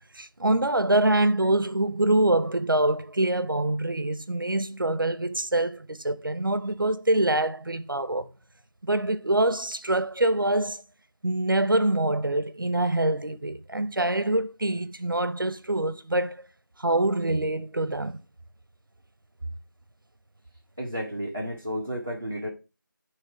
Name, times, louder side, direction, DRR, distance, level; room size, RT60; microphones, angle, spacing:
voice 1, 0.1-8.3 8.8-10.8 11.2-16.5 16.8-18.2, right 1 dB, 80° right, 0.8 m, -25 dB
voice 2, 20.8-22.5, equal, 5° right, 0.7 m, -32 dB
9.2 x 3.2 x 4.7 m
figure-of-eight pair, 175°, 11 cm